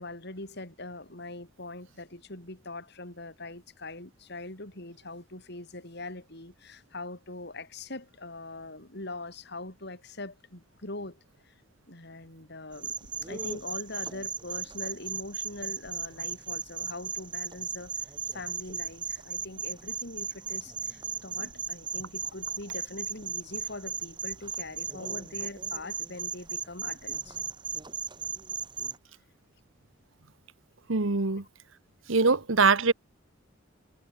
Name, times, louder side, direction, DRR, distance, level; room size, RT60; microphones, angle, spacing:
voice 1, 0.0-11.2 11.4-11.5 11.9-27.4, left 2 dB, 60° left, 6.3 m, -42 dB
sound 1, 12.7-29.0, right 6 dB, 25° right, 5.1 m, -36 dB
voice 2, 30.9-31.4 32.1-32.9, right 4 dB, 85° right, 1.4 m, -23 dB
head